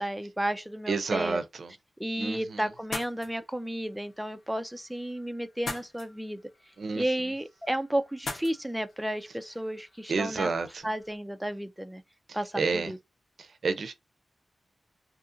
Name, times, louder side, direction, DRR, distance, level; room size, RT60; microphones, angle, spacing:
voice 1, 0.0-1.4 2.0-6.4 7.0-10.5 10.8-12.0 12.3-13.0, right 1 dB, 5° right, 0.3 m, -32 dB
voice 2, 0.9-1.7 2.2-2.7 6.8-7.3 10.1-10.9 12.3-12.9 13.4-13.9, right 4 dB, 75° right, 0.4 m, -30 dB
sound 1, 2.7-11.2, left 2 dB, 80° left, 1.0 m, -44 dB
2.7 x 2.4 x 2.5 m
cardioid pair, 60°, 0 cm